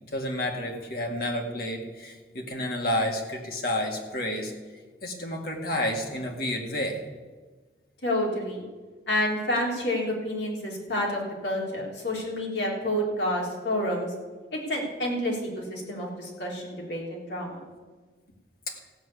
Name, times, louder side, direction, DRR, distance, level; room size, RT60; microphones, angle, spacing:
voice 1, 0.1-4.5 5.0-7.0 18.7-18.8, left 1 dB, 55° left, 1 dB, 2.0 m, -30 dB
voice 2, 8.0-8.7 9.1-14.1 14.5-17.6, left 1 dB, 80° left, -2 dB, 3.6 m, -29 dB
15.0 x 6.4 x 8.5 m, 1.4 s
head